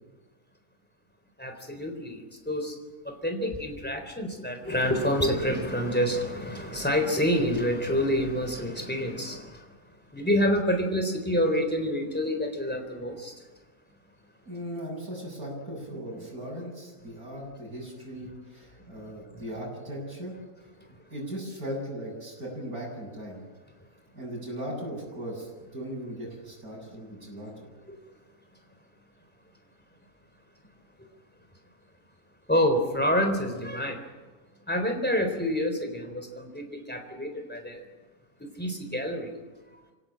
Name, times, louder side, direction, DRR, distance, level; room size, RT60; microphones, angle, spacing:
voice 1, 1.4-2.8 3.0-9.7 10.1-13.3 19.3-19.4 20.8-20.9 27.9-28.0 31.0-31.1 32.5-34.0 34.7-37.8 38.4-39.3, equal, 5° left, 5 dB, 3.8 m, -28 dB
voice 2, 14.5-20.4 21.1-23.4 24.1-27.5, equal, 75° right, -1 dB, 8.6 m, -38 dB
25.5 x 17.5 x 8.9 m, 1.3 s
omnidirectional pair, 1.6 m